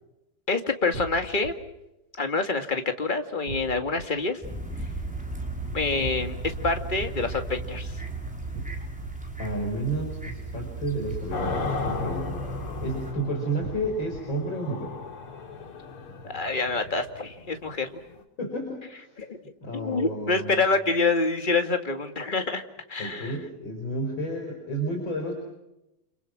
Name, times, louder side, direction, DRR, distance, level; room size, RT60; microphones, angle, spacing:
voice 1, 0.5-1.5 2.2-4.4 5.7-8.0 16.2-18.0 19.2-19.4 19.7-22.6 22.9-23.4, left 3 dB, 25° left, 7 dB, 2.1 m, -27 dB
sound 1, 0.9-1.5 3.5-4.0 6.0-6.6 8.5-9.1 11.1-11.7 13.6-14.2, right 3 dB, 75° right, 3.3 m, -37 dB
sound 2, 4.4-13.1, right 3 dB, 5° right, 5.0 m, -36 dB
voice 2, 9.4-12.3 12.8-15.0 18.4-19.2 19.6-20.6 23.0-25.3, right 1 dB, 60° left, 2 dB, 5.6 m, -31 dB
sound 3, 11.3-18.2, left 4 dB, 85° left, 3.4 m, -35 dB
29.5 x 27.0 x 6.2 m, 0.90 s
omnidirectional pair, 2.4 m